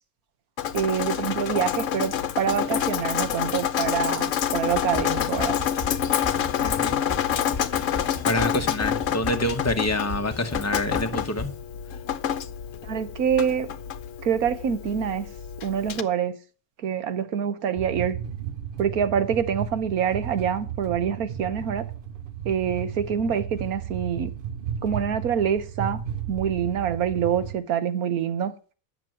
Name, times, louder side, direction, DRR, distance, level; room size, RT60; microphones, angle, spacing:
Drip, 0.6-16.0, left 9 dB, 65° left, 1.1 m, -28 dB
voice 1, 0.7-5.6 12.8-13.7 14.2-15.3 15.6-16.4 16.8-18.2 18.8-21.8 22.4-24.3 24.8-26.0 26.3-28.5, right 8 dB, 85° right, 1.5 m, -26 dB
sound 1, 4.7-11.6, left 2 dB, 30° left, 1.7 m, -37 dB
voice 2, 6.6-7.0 8.2-11.5, left 1 dB, 15° left, 0.9 m, -26 dB
sound 2, 17.8-27.6, right 9 dB, 50° right, 0.7 m, -34 dB
9.3 x 6.6 x 7.6 m
omnidirectional pair, 1.5 m